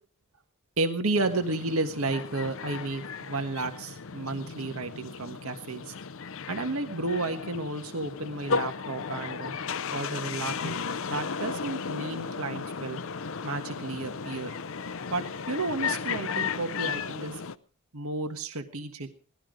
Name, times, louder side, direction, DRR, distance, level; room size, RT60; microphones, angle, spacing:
voice 1, 0.8-5.9 6.5-9.5 9.9-13.0 13.4-14.5 15.1-17.4 17.9-19.1, right 2 dB, 75° right, 7 dB, 1.5 m, -32 dB
sound 1, 1.2-17.6, left 5 dB, 65° left, 0.6 m, -35 dB
18.5 x 12.5 x 5.2 m, 0.40 s
head